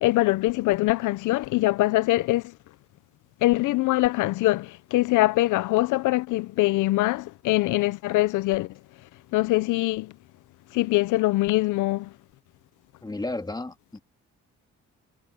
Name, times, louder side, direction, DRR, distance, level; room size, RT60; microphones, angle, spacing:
voice 1, 0.0-2.5 3.4-8.7 9.3-10.1 10.7-12.1, left 18 dB, 85° left, 0.5 m, -23 dB
voice 2, 13.0-14.0, left 2 dB, 15° left, 1.9 m, -33 dB
cardioid pair, 90°, 30 cm